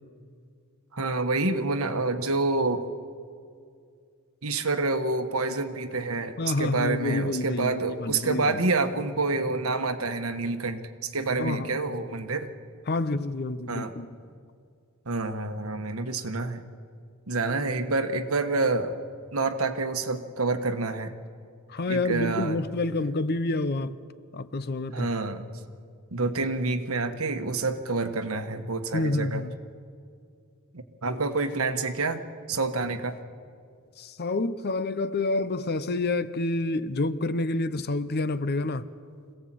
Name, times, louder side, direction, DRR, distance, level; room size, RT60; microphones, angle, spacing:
voice 1, 0.9-2.8 4.4-12.5 13.7-13.9 15.1-16.6 17.3-18.9 19.3-21.1 21.9-22.6 24.9-25.4 26.1-29.4 30.7-32.2 32.5-33.2, right 3 dB, 70° right, 1.3 m, -28 dB
voice 2, 6.4-8.6 11.4-11.8 12.9-14.1 21.7-23.9 24.3-25.1 28.9-29.5 34.0-38.8, left 2 dB, 45° left, 0.7 m, -28 dB
26.0 x 17.0 x 7.6 m
head